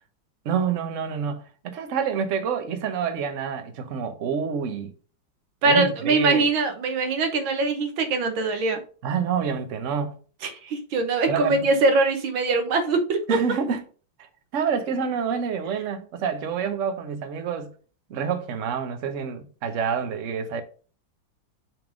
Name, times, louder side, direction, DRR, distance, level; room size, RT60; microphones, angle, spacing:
voice 1, 0.4-4.9 5.6-6.5 9.0-10.2 11.3-11.6 13.3-13.8 14.5-17.7 18.1-20.6, right 7 dB, 55° right, 0.9 m, -27 dB
voice 2, 5.6-8.8 10.4-13.2, right 3 dB, 90° right, 1.8 m, -22 dB
5.8 x 3.6 x 5.0 m
omnidirectional pair, 2.1 m